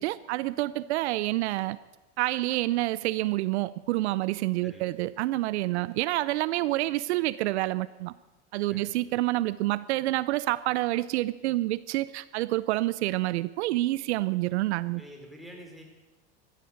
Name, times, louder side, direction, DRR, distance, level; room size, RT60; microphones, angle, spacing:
voice 1, 0.0-1.8 2.2-8.1 8.5-15.0, right 17 dB, 80° right, 18 dB, 0.6 m, -28 dB
voice 2, 15.0-15.8, equal, ahead, 0 dB, 4.7 m, -47 dB
14.5 x 13.5 x 6.6 m, 1.1 s
supercardioid pair, 105°, 33 cm